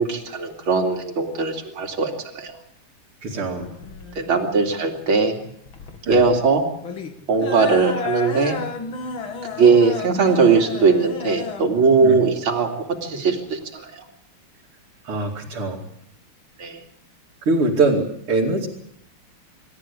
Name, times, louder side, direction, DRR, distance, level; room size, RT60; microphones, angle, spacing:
voice 1, 0.0-2.5 4.2-5.4 6.1-6.6 7.3-8.6 9.6-13.9 16.6-16.8, right 4 dB, 70° right, 1 dB, 3.5 m, -19 dB
voice 2, 3.2-3.7 6.1-6.2 12.0-12.2 15.1-15.8 17.5-18.7, right 3 dB, 85° right, -3 dB, 3.6 m, -22 dB
sound 1, 3.6-13.6, left 3 dB, 70° left, 2.9 m, -33 dB
27.5 x 13.5 x 8.5 m, 0.73 s
omnidirectional pair, 2.4 m